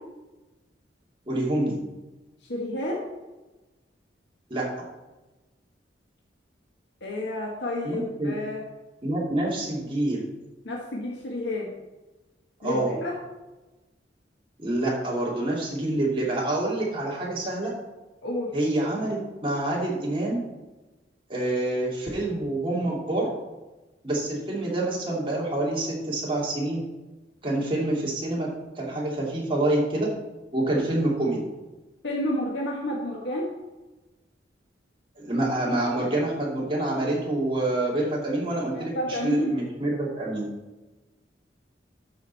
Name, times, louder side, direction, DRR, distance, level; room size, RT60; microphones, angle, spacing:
voice 1, 1.3-1.8 4.5-4.7 7.8-8.3 9.0-10.3 12.6-12.9 14.6-17.7 18.5-20.4 21.3-23.3 24.0-26.8 27.4-28.5 28.7-30.1 30.5-31.5 35.2-40.5, right 1 dB, 30° right, -4 dB, 2.5 m, -27 dB
voice 2, 2.5-3.0 7.0-8.6 10.6-11.7 12.6-13.1 18.2-18.5 32.0-33.5 38.7-39.5, left 1 dB, 80° left, -3 dB, 1.4 m, -30 dB
12.5 x 5.1 x 4.1 m, 1.1 s
head